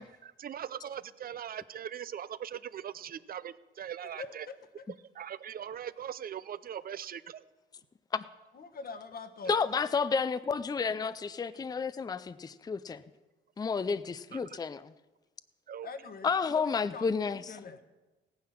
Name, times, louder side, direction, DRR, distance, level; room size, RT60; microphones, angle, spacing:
voice 1, 0.0-4.5 5.1-7.4 9.5-9.6 14.3-14.6 15.7-15.9, right 9 dB, 50° right, 17 dB, 0.6 m, -41 dB
voice 2, 4.2-4.8 8.5-9.5 15.8-17.8, left 4 dB, 50° left, 9 dB, 1.3 m, -44 dB
voice 3, 9.5-13.0 13.6-14.9 16.2-17.4, left 5 dB, 20° left, 14 dB, 0.5 m, -31 dB
16.0 x 9.6 x 5.8 m, 1.1 s
cardioid pair, 90°, 20 cm